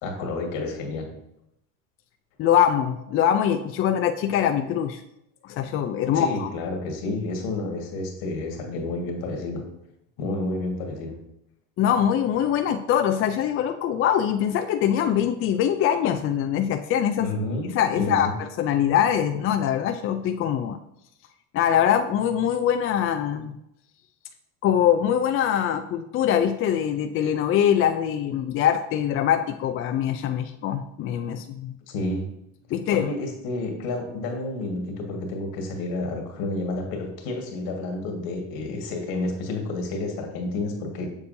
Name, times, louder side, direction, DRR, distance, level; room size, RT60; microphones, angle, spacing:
voice 1, 0.0-1.1 6.1-9.6 10.2-11.1 17.2-18.3 31.9-32.4 32.9-41.1, left 2 dB, 70° left, 2 dB, 1.8 m, -30 dB
voice 2, 2.4-5.0 5.4-6.5 11.8-17.3 17.7-20.8 21.5-23.6 24.6-31.8 32.7-33.1, left 9 dB, 35° left, 7 dB, 0.4 m, -23 dB
6.9 x 6.8 x 2.7 m, 0.81 s
supercardioid pair, 115°, 37 cm